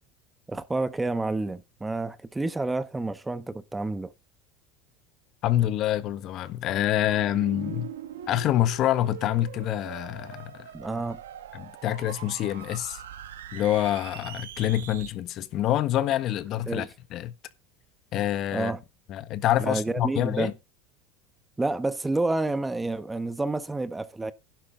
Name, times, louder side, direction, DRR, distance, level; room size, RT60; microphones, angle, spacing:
voice 1, 0.5-4.1 10.7-11.2 16.7-16.9 18.5-18.8 19.6-20.5 21.6-24.3, right 2 dB, 10° right, 1.2 m, -29 dB
voice 2, 5.4-7.9 8.3-10.7 11.5-13.0 13.5-17.3 18.1-18.7 19.1-20.5, left 12 dB, 50° left, 1.4 m, -26 dB
sound 1, 6.9-15.1, right 10 dB, 85° right, 2.1 m, -42 dB
11.5 x 10.5 x 3.8 m
hypercardioid pair, 90°, 0 cm